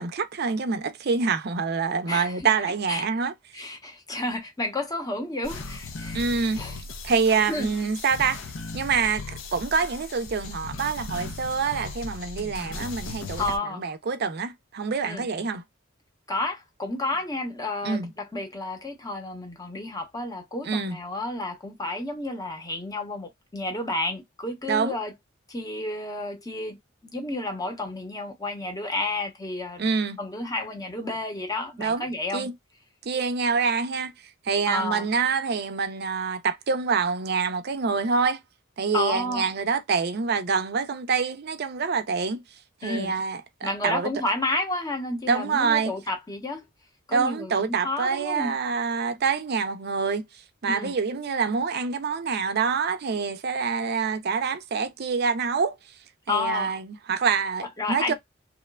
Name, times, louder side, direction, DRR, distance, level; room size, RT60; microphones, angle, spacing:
voice 1, 0.0-3.6 6.1-6.6 7.0-8.4 8.7-13.4 13.8-15.6 17.8-18.1 20.6-21.0 24.7-25.0 29.8-30.2 31.8-32.1 32.3-32.5 33.0-34.1 34.4-38.4 38.8-42.4 42.8-44.1 45.3-45.9 47.1-50.2 50.6-55.8 56.3-58.1, right 5 dB, 55° right, 0.5 m, -26 dB
voice 2, 2.1-2.4 2.9-3.0 3.5-6.2 6.6-6.8 7.5-7.7 13.4-13.8 15.0-15.3 16.3-25.1 25.5-29.8 30.2-32.5 34.7-35.1 38.9-39.5 42.8-43.1 43.6-46.6 47.1-48.5 50.7-50.9 56.3-56.7 57.8-58.1, left 2 dB, 20° left, 0.8 m, -31 dB
sound 1, 5.4-13.6, left 3 dB, 85° left, 0.6 m, -38 dB
3.0 x 2.1 x 2.2 m
head